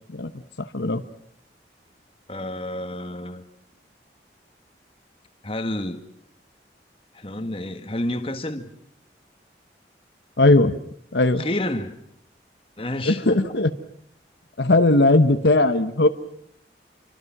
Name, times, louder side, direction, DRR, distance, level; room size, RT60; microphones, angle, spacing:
voice 1, 0.6-1.0 10.4-10.7 11.1-11.4 13.1-13.7 14.6-16.1, left 2 dB, 75° left, 1.1 m, -18 dB
voice 2, 2.3-3.4 5.4-6.0 7.1-8.7 11.4-12.0 12.8-13.2, left 1 dB, 30° left, 1.8 m, -29 dB
28.5 x 24.5 x 6.0 m
head